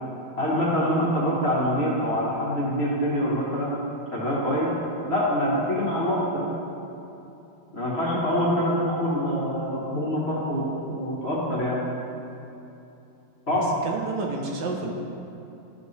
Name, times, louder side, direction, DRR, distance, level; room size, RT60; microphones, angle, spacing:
voice 1, 0.4-3.7 4.1-4.7 5.1-6.5 7.7-11.8 13.5-13.7, equal, 35° left, -6 dB, 1.6 m, -25 dB
voice 2, 13.5-14.9, right 3 dB, 70° right, 0 dB, 1.5 m, -30 dB
13.0 x 5.2 x 3.3 m, 2.9 s
omnidirectional pair, 2.0 m